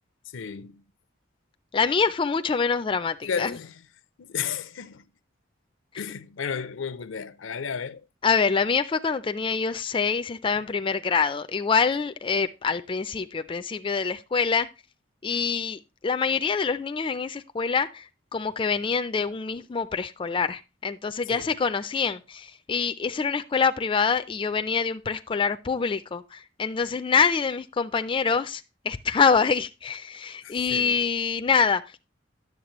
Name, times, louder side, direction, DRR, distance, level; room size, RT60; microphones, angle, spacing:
voice 1, 0.3-0.8 3.2-3.7 4.2-5.1 6.0-8.0 21.3-21.5 30.4-30.9, left 6 dB, 75° left, 0.5 m, -33 dB
voice 2, 1.7-3.6 8.2-14.7 15.2-18.1 18.3-32.0, left 5 dB, 25° left, 0.4 m, -25 dB
10.5 x 7.2 x 3.0 m
head